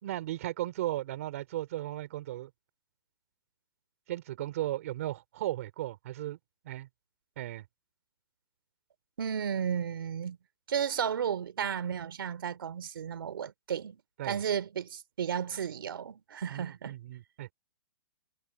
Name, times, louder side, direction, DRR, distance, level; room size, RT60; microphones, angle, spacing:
voice 1, 0.0-2.5 4.1-6.4 6.6-6.9 7.4-7.7 14.2-14.4 16.5-17.5, right 14 dB, 35° right, 3.1 m, -36 dB
voice 2, 9.2-10.4 10.7-17.0, right 8 dB, 65° right, 2.9 m, -33 dB
hypercardioid pair, 175°, 13 cm